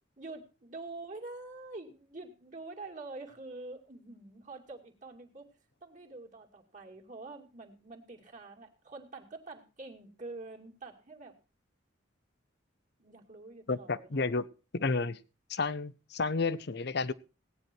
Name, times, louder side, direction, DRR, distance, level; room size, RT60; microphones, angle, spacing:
voice 1, 0.2-5.5 5.8-11.4 13.0-14.4, right 3 dB, 40° right, 1 dB, 2.5 m, -46 dB
voice 2, 13.7-14.4 14.7-15.2 15.5-17.1, left 4 dB, 60° left, 16 dB, 0.8 m, -31 dB
17.5 x 9.5 x 4.5 m, 0.33 s
head